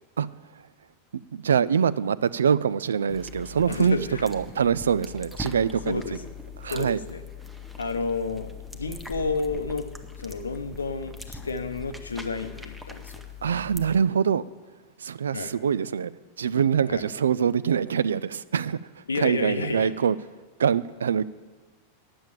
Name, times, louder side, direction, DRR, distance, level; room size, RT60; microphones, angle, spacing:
voice 1, 1.3-6.0 6.6-7.0 13.4-14.5 15.0-16.1 16.4-18.8 19.2-20.2 20.6-21.3, right 7 dB, 65° right, 18 dB, 0.3 m, -24 dB
sound 1, 3.1-14.0, left 4 dB, ahead, 0.8 m, -41 dB
voice 2, 3.7-4.3 5.9-6.2 6.7-7.2 7.8-9.9 10.2-13.1 15.3-15.5 16.9-17.1 19.1-19.9, left 4 dB, 75° left, 9 dB, 0.7 m, -31 dB
8.7 x 6.9 x 8.8 m, 1.3 s
figure-of-eight pair, 90°, 0 cm